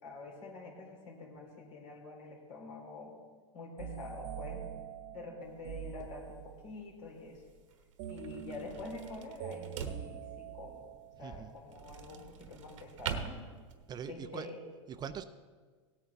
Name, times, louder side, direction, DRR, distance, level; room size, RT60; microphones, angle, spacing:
voice 1, 0.0-3.2 3.5-4.7 5.1-7.4 8.1-10.8 11.2-13.4 14.1-14.6, left 3 dB, 75° left, -2 dB, 3.7 m, -46 dB
sound 1, 3.8-6.8 8.0-11.3, right 10 dB, 65° right, 1.0 m, -45 dB
sound 2, 5.4-14.1, right 7 dB, 85° right, 1.1 m, -45 dB
voice 2, 11.2-11.5 13.9-14.5 14.9-15.2, right 8 dB, 25° right, 11 dB, 0.5 m, -42 dB
17.0 x 8.9 x 3.5 m, 1.5 s
supercardioid pair, 125°, 16 cm